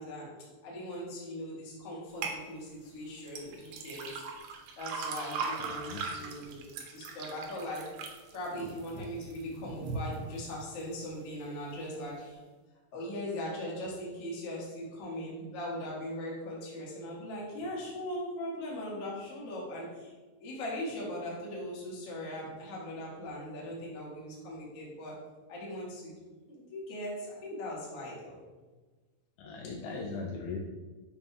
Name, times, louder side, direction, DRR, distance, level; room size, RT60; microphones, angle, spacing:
voice 1, 0.0-6.6 6.9-7.8 8.3-12.4 12.9-20.1 20.4-25.1 25.5-26.1 26.5-28.4, equal, 55° left, -5 dB, 1.8 m, -39 dB
sound 1, 2.2-2.4 3.3-9.4 9.9-10.4 10.9-11.0, right 5 dB, 80° right, 2.4 m, -39 dB
voice 2, 5.6-6.0 29.4-30.6, left 4 dB, 80° left, 0 dB, 2.5 m, -39 dB
7.3 x 5.7 x 2.3 m, 1.3 s
omnidirectional pair, 5.0 m